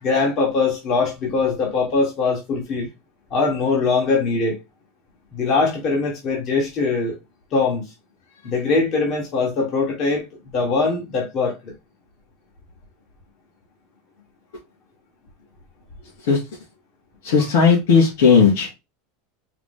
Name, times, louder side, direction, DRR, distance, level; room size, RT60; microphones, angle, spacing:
voice 1, 0.0-2.9 3.3-4.6 5.3-7.1 7.5-7.9 8.4-10.2 10.5-11.7, left 4 dB, 35° left, 1.4 m, -21 dB
voice 2, 17.2-18.8, left 5 dB, 80° left, 2.7 m, -15 dB
4.8 x 2.2 x 3.6 m
supercardioid pair, 165°, 0 cm